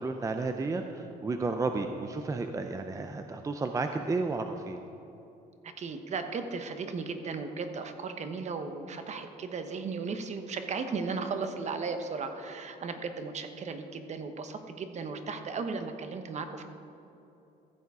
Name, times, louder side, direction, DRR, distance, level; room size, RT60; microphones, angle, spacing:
voice 1, 0.0-4.8, right 3 dB, 20° right, 6 dB, 0.5 m, -32 dB
voice 2, 5.6-16.6, right 4 dB, 45° right, 8 dB, 1.0 m, -36 dB
14.5 x 7.0 x 4.8 m, 2.9 s
cardioid pair, 110°, 17 cm